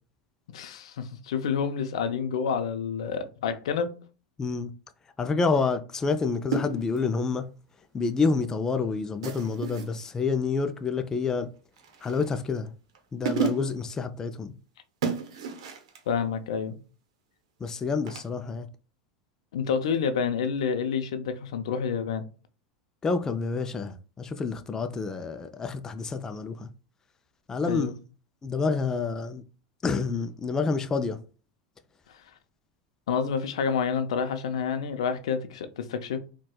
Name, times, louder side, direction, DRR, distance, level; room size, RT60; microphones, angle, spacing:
voice 1, 0.5-3.9 16.1-16.8 19.5-22.3 27.6-27.9 33.1-36.2, left 6 dB, 85° left, 0.5 m, -28 dB
voice 2, 4.4-4.7 5.2-7.5 7.9-11.5 12.0-12.7 13.1-14.5 17.6-18.7 23.0-26.7 27.5-27.9 28.4-29.4 29.8-31.2, left 4 dB, 20° left, 0.4 m, -28 dB
sound 1, 6.5-7.1 9.2-10.0 11.8-12.4 12.9-13.0 13.3-13.9 15.0-16.0 18.1-18.3, right 6 dB, 80° right, 0.8 m, -32 dB
4.3 x 2.2 x 2.3 m
supercardioid pair, 115°, 3 cm